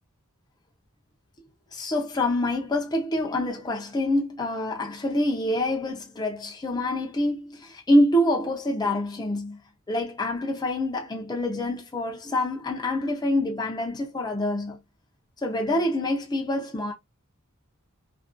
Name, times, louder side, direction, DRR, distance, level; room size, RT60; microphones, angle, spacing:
voice 1, 1.7-9.6 9.9-14.8 15.4-16.9, left 1 dB, 20° left, 0.5 m, -26 dB
2.5 x 2.2 x 2.3 m
head